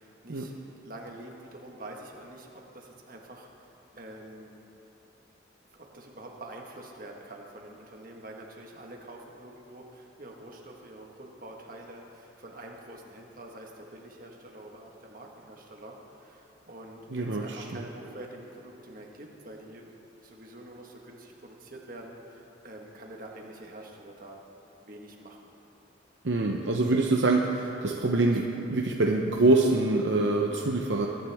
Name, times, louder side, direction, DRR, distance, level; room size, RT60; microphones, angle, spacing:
voice 1, 0.0-4.5 5.7-19.9 20.2-24.4 24.8-25.4 28.3-28.4, right 1 dB, 45° right, 0 dB, 1.5 m, -46 dB
voice 2, 17.1-17.9 26.2-31.1, right 2 dB, 65° right, 0 dB, 0.8 m, -25 dB
21.5 x 10.5 x 3.5 m, 2.9 s
head